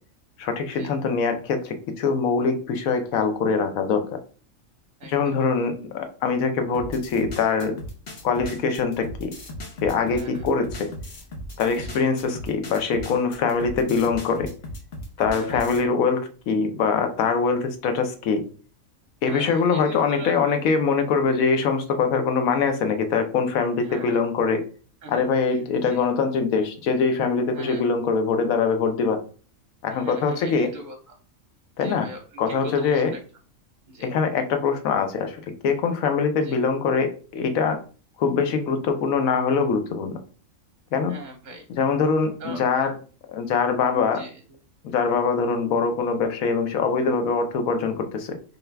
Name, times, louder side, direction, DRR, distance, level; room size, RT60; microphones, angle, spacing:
voice 1, 0.4-4.1 5.1-7.7 8.2-9.3 9.8-10.9 11.6-14.5 15.2-18.4 19.2-24.6 25.1-29.2 29.8-30.7 31.8-32.1 32.4-33.1 34.0-37.8 38.2-40.2 40.9-41.2 41.8-42.9 43.3-44.2 44.8-48.4, left 5 dB, 85° left, 7 dB, 1.1 m, -23 dB
voice 2, 5.0-5.5 10.1-10.5 11.8-12.0 15.3-15.6 19.2-20.6 23.8-24.2 25.0-26.0 27.5-27.9 29.9-31.2 31.8-33.2 33.9-34.1 36.4-36.6 41.1-41.7 42.4-42.7 44.1-44.4, right 2 dB, 45° right, 2 dB, 0.6 m, -41 dB
sound 1, 6.7-15.9, left 1 dB, 50° left, 1.0 m, -37 dB
3.8 x 2.7 x 3.3 m, 0.39 s
omnidirectional pair, 1.4 m